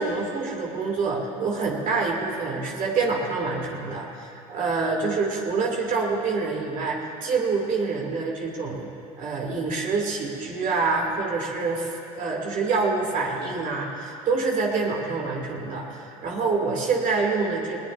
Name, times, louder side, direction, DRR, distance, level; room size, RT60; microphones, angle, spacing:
voice 1, 0.0-8.9 9.2-17.8, right 4 dB, 45° right, -1 dB, 2.8 m, -26 dB
20.0 x 19.5 x 2.7 m, 2.7 s
hypercardioid pair, 85°, 18 cm